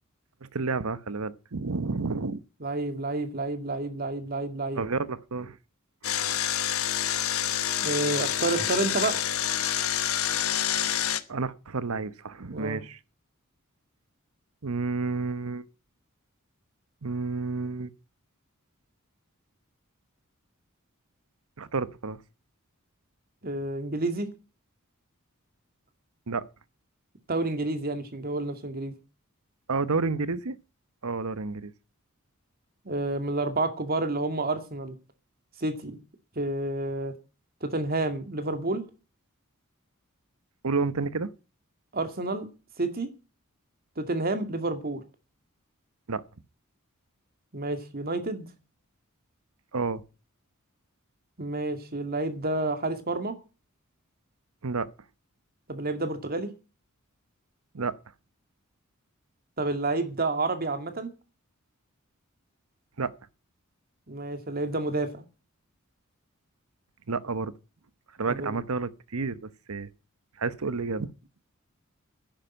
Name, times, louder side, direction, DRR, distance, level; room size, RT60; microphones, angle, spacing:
voice 1, 0.4-2.4 4.7-5.6 6.0-6.2 11.3-13.0 14.6-15.6 17.0-17.9 21.6-22.2 26.3-26.4 29.7-30.5 31.0-31.7 40.6-41.3 46.1-46.2 49.7-50.0 54.6-54.9 57.7-58.0 63.0-63.1 67.1-67.5 68.2-69.9 70.4-71.1, right 4 dB, 90° right, 0.9 m, -30 dB
voice 2, 2.6-4.8 7.8-9.2 12.5-12.8 23.4-24.3 27.3-29.0 32.9-35.0 35.6-36.0 36.4-37.2 37.6-38.8 41.9-42.5 42.8-43.1 44.0-45.0 47.5-48.5 51.4-53.3 55.7-56.5 59.6-61.1 64.1-65.2 68.3-68.6, right 2 dB, 45° right, 2.3 m, -29 dB
Engine, 6.0-11.2, left 10 dB, 80° left, 1.2 m, -27 dB
10.5 x 10.5 x 8.9 m
head